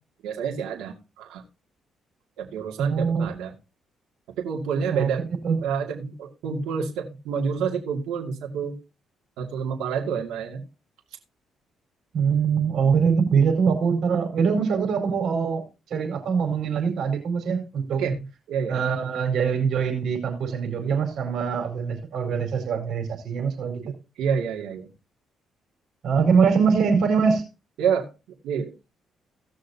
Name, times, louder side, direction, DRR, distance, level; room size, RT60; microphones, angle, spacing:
voice 1, 0.2-1.4 2.4-3.5 4.4-5.2 5.6-8.8 9.4-10.6 18.0-18.8 23.8-24.9 27.8-28.1 28.4-28.7, right 6 dB, 90° right, 1 dB, 2.3 m, -28 dB
voice 2, 2.8-3.3 4.9-5.1 5.4-5.6 12.1-15.6 15.9-18.0 18.7-23.8 26.0-27.4, right 6 dB, 70° right, 3 dB, 4.6 m, -23 dB
18.0 x 6.5 x 2.8 m, 0.28 s
cardioid pair, 90°, 0 cm